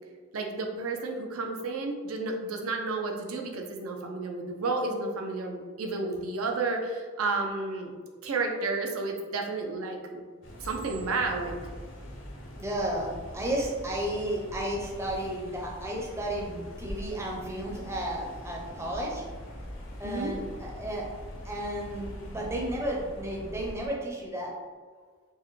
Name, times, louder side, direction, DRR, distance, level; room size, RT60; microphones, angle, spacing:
voice 1, 0.3-7.9 8.2-10.2 10.6-11.6 20.0-20.3, right 3 dB, 80° right, 2 dB, 0.5 m, -31 dB
sound 1, 10.4-23.9, equal, 65° left, 0.7 m, -42 dB
voice 2, 12.6-19.2 20.0-21.0 21.4-24.5, right 1 dB, 10° right, -3 dB, 0.5 m, -33 dB
4.4 x 2.1 x 3.1 m, 1.5 s
head